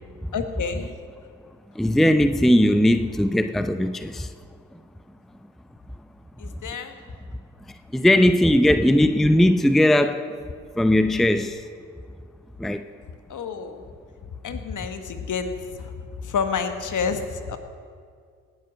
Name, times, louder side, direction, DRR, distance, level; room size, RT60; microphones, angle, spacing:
voice 1, 0.3-0.9 6.4-7.0 13.3-13.8 14.4-15.5 15.8-15.9 16.2-17.6, left 6 dB, 50° left, 8 dB, 1.5 m, -29 dB
voice 2, 1.8-4.3 7.9-10.3 10.8-11.6 12.6-12.8, left 1 dB, ahead, 10 dB, 0.6 m, -19 dB
18.0 x 9.4 x 6.4 m, 2.1 s
hypercardioid pair, 40°, 38 cm